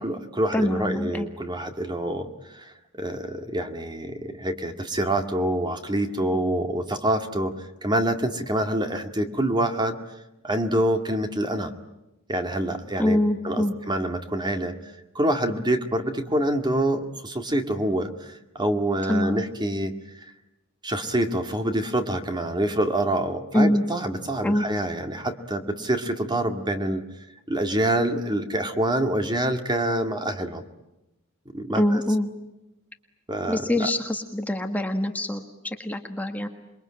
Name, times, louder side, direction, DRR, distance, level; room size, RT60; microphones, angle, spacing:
voice 1, 0.0-10.0 10.4-11.7 12.3-13.2 13.4-14.8 15.2-19.9 20.8-27.0 27.5-30.6 31.5-31.8 33.3-33.9, right 1 dB, 20° right, 7 dB, 2.0 m, -26 dB
voice 2, 0.5-1.3 13.0-13.7 19.1-19.4 23.5-23.8 24.4-24.6 31.7-32.3 33.5-36.5, left 1 dB, 5° left, 5 dB, 1.6 m, -24 dB
28.0 x 22.5 x 8.9 m, 0.94 s
head